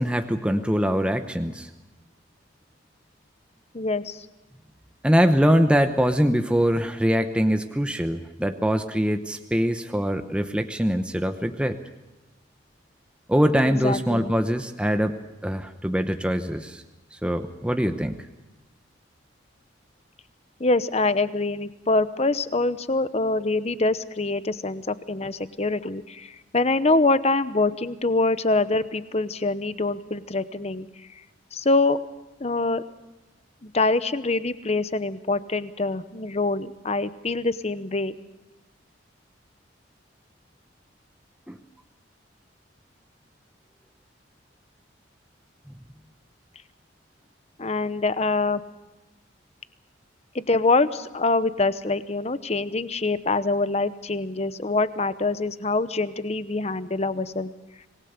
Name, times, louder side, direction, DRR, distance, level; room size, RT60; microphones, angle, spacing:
voice 1, 0.0-1.7 5.0-11.8 13.3-15.2 15.4-16.8 17.2-18.2 41.5-41.6, equal, 5° right, 7 dB, 0.9 m, -23 dB
voice 2, 3.7-4.3 13.6-14.3 20.6-30.9 31.5-32.0 32.4-32.8 33.6-38.1 47.6-48.6 50.3-57.5, left 3 dB, 35° left, 14 dB, 0.9 m, -25 dB
26.0 x 20.0 x 6.8 m, 1.1 s
head